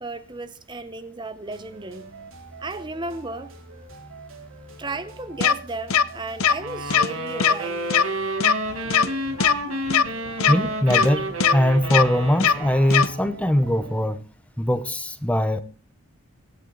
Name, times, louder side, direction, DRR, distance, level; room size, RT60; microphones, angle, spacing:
voice 1, 0.0-2.1 2.6-3.5 4.8-7.8, right 2 dB, 20° right, 0.8 m, -34 dB
sound 1, 1.4-14.1, right 2 dB, 65° right, 2.9 m, -44 dB
sound 2, 5.4-5.5 5.9-6.0 6.4-6.5 6.9-7.1 7.4-7.5 7.9-8.0 8.4-8.5 8.9-9.1 9.4-9.5 9.9-10.0 10.4-10.5 10.9-11.1 11.4-11.5 11.9-12.0 12.4-12.5 12.9-13.1, left 7 dB, 70° left, 0.8 m, -18 dB
sound 3, 6.6-13.4, right 1 dB, 80° right, 4.7 m, -30 dB
voice 2, 10.5-14.2 14.6-15.6, equal, 5° left, 0.8 m, -21 dB
24.5 x 9.8 x 3.9 m
head